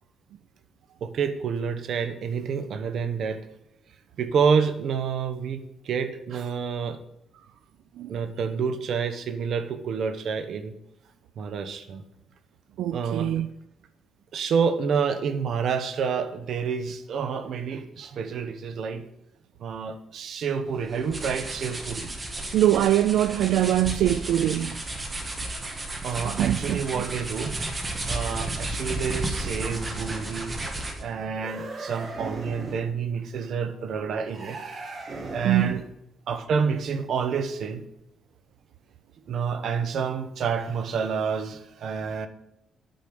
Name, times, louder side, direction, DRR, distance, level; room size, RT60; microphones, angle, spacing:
voice 1, 1.0-3.5 4.2-7.0 8.1-10.7 11.4-12.0 12.9-13.3 14.3-19.1 19.6-22.1 26.0-27.8 28.1-34.6 35.3-35.8 36.3-37.9 39.3-42.3, right 6 dB, 55° right, 0.9 m, -28 dB
voice 2, 12.8-13.5 22.5-24.8 26.2-26.8 35.4-35.8, right 12 dB, 85° right, 0.4 m, -23 dB
sound 1, 20.7-31.1, right 2 dB, 20° right, 1.3 m, -33 dB
sound 2, 31.3-32.9 34.3-35.9, right 3 dB, 35° right, 1.6 m, -38 dB
9.1 x 5.2 x 7.6 m
cardioid pair, 170°, 0 cm